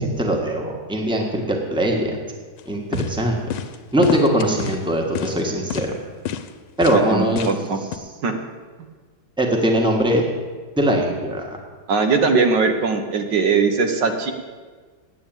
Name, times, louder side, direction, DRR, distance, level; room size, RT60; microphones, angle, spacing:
voice 1, 0.0-2.2 2.6-3.4 3.9-5.9 6.8-7.5 9.4-10.2 10.8-11.6, right 1 dB, 5° right, 1 dB, 1.4 m, -21 dB
sound 1, 2.6-2.7 2.9-3.1 3.5-3.8 4.0-4.8 5.2-5.4 5.7-5.9 6.3-6.5 6.8-7.0 7.4-7.6 7.9-8.0, left 9 dB, 85° left, 1.3 m, -28 dB
voice 2, 6.9-7.8 8.2-8.3 11.9-14.3, right 4 dB, 80° right, 6 dB, 1.8 m, -20 dB
9.0 x 8.6 x 9.0 m, 1.5 s
omnidirectional pair, 1.9 m